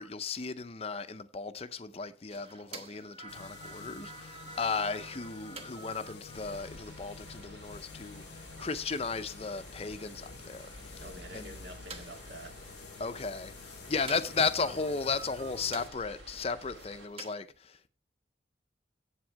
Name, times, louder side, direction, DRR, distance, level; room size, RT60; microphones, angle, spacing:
voice 1, 0.0-11.0 11.3-11.5 13.0-17.9, left 4 dB, 35° left, 0.6 m, -35 dB
sound 1, 2.3-17.3, right 3 dB, 30° right, 1.0 m, -51 dB
sound 2, 3.3-15.9, left 6 dB, 70° left, 0.7 m, -50 dB
sound 3, 6.3-17.1, equal, 90° right, 3.5 m, -51 dB
voice 2, 11.0-12.6, right 1 dB, 70° right, 1.9 m, -47 dB
8.2 x 7.9 x 4.6 m
head